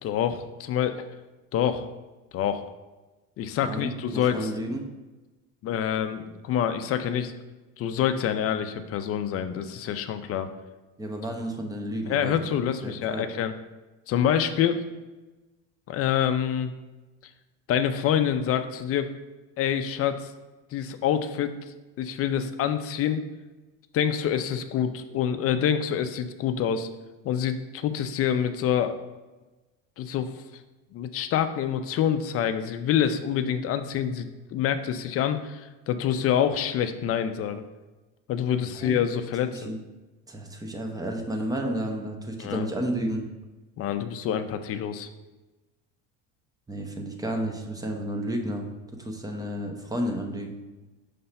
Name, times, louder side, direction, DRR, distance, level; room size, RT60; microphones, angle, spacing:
voice 1, 0.0-1.0 1.5-1.9 2.3-2.6 3.4-4.5 5.6-7.3 7.8-10.5 12.1-13.5 14.1-14.8 15.9-16.7 17.7-19.1 19.6-20.3 20.7-21.5 22.0-23.3 23.9-26.9 27.2-29.0 30.0-30.4 30.9-37.6 38.3-39.7 42.4-42.7 43.8-45.1, left 9 dB, 40° left, 9 dB, 0.5 m, -26 dB
voice 2, 3.6-4.8 11.0-12.3 12.8-13.3 38.7-39.0 39.4-39.8 40.3-43.2 46.7-48.7 48.9-50.6, right 1 dB, 10° right, 3 dB, 0.7 m, -31 dB
5.4 x 3.3 x 5.6 m, 1.1 s
cardioid pair, 130°, 35 cm